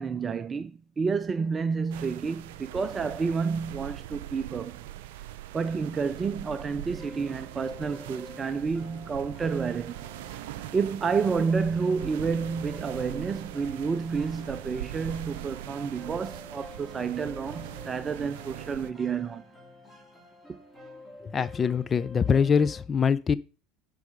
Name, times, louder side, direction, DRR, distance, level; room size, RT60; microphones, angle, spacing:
voice 1, 0.0-4.8 5.5-10.1 10.7-19.4, right 5 dB, 30° right, 0.6 m, -30 dB
sound 1, 1.9-18.9, right 14 dB, 70° right, 0.6 m, -41 dB
sound 2, 6.9-22.8, left 2 dB, 10° left, 4.5 m, -49 dB
voice 2, 21.2-23.4, left 6 dB, 30° left, 0.5 m, -24 dB
10.5 x 4.9 x 5.0 m
hypercardioid pair, 75°, 0 cm